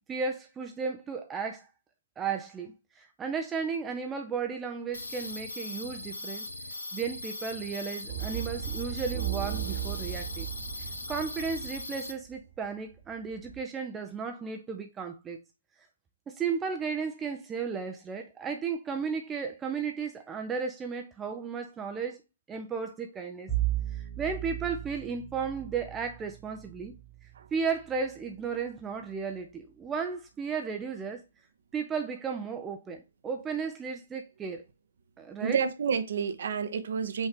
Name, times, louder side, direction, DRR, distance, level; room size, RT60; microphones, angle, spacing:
voice 1, 0.1-1.7 2.2-6.4 6.9-10.5 10.8-15.4 16.4-22.2 22.5-23.5 23.9-26.9 27.5-31.2 31.7-34.6 35.2-35.6, right 5 dB, 10° right, 0.5 m, -34 dB
sound 1, 4.9-12.1, left 2 dB, 80° left, 1.0 m, -39 dB
sound 2, 8.1-12.3 12.9-13.6, right 12 dB, 35° right, 1.0 m, -36 dB
Bowed string instrument, 23.5-28.6, right 14 dB, 10° left, 1.4 m, -36 dB
voice 2, 35.4-37.3, right 6 dB, 55° right, 0.7 m, -29 dB
5.4 x 2.8 x 3.5 m
figure-of-eight pair, 135°, 0 cm